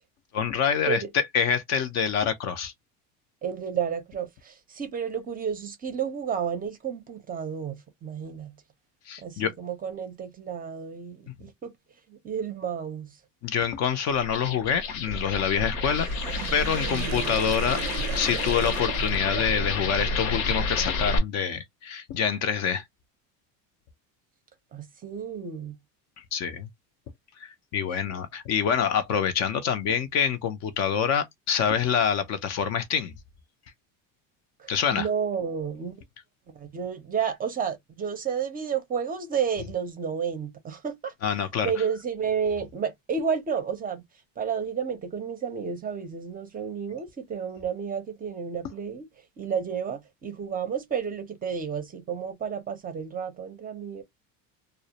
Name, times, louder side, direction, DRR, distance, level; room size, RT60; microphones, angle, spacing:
voice 1, 0.3-2.7 9.1-9.5 13.4-16.1 16.5-22.8 26.3-26.7 27.4-33.1 34.7-35.1 41.2-41.7, left 7 dB, 45° left, 0.4 m, -26 dB
voice 2, 3.4-8.5 9.2-11.7 12.1-13.2 16.8-17.3 24.7-25.8 34.6-35.9 36.5-41.1 41.6-44.0 44.4-49.1 49.4-54.0, right 7 dB, 20° right, 0.5 m, -31 dB
sound 1, 14.1-21.2, left 3 dB, 80° left, 0.8 m, -30 dB
Sink (filling or washing), 15.9-19.8, right 14 dB, 90° right, 0.5 m, -37 dB
2.3 x 2.0 x 2.7 m
supercardioid pair, 125°, 39 cm